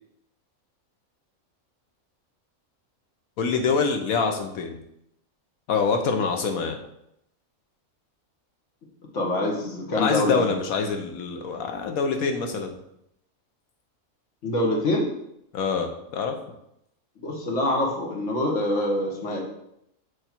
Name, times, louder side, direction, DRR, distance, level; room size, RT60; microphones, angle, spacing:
voice 1, 3.4-4.8 5.7-6.8 9.9-12.7 15.5-16.4, left 5 dB, 75° left, 5 dB, 1.2 m, -25 dB
voice 2, 9.1-10.5 14.4-15.1 17.2-19.4, left 1 dB, 60° left, -1 dB, 1.5 m, -25 dB
6.9 x 3.2 x 4.4 m, 0.78 s
omnidirectional pair, 1.5 m